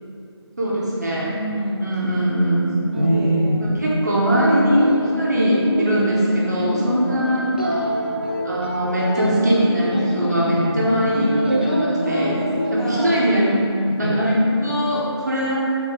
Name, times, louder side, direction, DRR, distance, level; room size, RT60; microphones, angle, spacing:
voice 1, 0.6-1.3 1.8-2.8 3.7-7.9 8.4-12.4 12.7-15.7, right 1 dB, 40° right, -6 dB, 1.1 m, -21 dB
voice 2, 1.3-1.8 2.8-3.5 6.8-7.4 12.0-13.2, equal, 10° left, -16 dB, 1.4 m, -29 dB
sound 1, 2.7-14.6, equal, 20° right, 0.3 m, -24 dB
6.4 x 4.0 x 4.9 m, 2.6 s
figure-of-eight pair, 175°, 15 cm